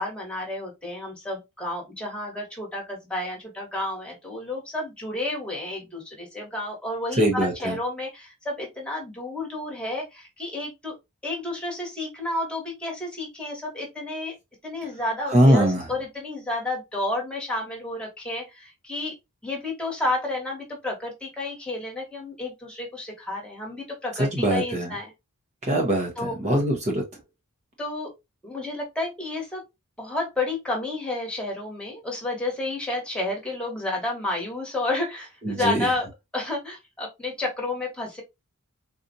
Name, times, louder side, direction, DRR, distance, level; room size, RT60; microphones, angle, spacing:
voice 1, 0.0-10.9 11.2-14.3 14.6-19.1 19.4-25.1 26.2-26.6 27.8-28.1 28.4-29.6 30.0-36.1 36.3-38.2, left 2 dB, 5° left, 1.3 m, -31 dB
voice 2, 7.2-7.7 15.3-15.8 24.2-24.9 25.6-26.1 26.4-27.0 35.4-35.9, right 1 dB, 30° right, 0.8 m, -21 dB
3.9 x 2.4 x 2.6 m
head